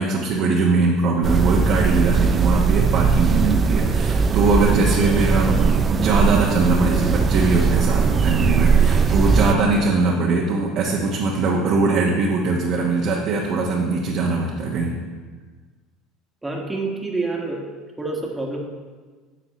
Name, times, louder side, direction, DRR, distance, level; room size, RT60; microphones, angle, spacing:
voice 1, 0.0-14.9, right 3 dB, 55° right, -2 dB, 1.2 m, -21 dB
sound 1, 1.2-9.5, right 5 dB, 30° right, 0.5 m, -19 dB
voice 2, 16.4-17.6 18.0-18.6, right 3 dB, 10° right, -1 dB, 1.7 m, -27 dB
10.0 x 6.7 x 3.1 m, 1.4 s
hypercardioid pair, 85°, 0 cm